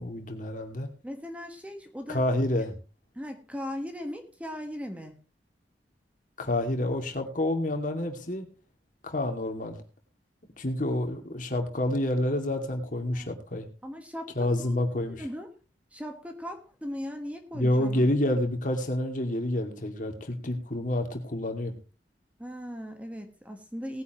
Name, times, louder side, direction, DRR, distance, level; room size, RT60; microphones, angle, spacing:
voice 1, 0.0-0.9 2.1-2.7 6.4-8.5 9.0-9.8 10.6-13.7 14.4-15.2 17.5-21.8, left 1 dB, 45° left, 5 dB, 2.3 m, -28 dB
voice 2, 1.0-2.2 3.1-5.1 13.1-13.3 13.8-14.8 15.2-15.5 15.9-18.1 22.4-24.0, equal, 10° right, 5 dB, 1.4 m, -38 dB
19.0 x 9.8 x 3.0 m, 0.33 s
head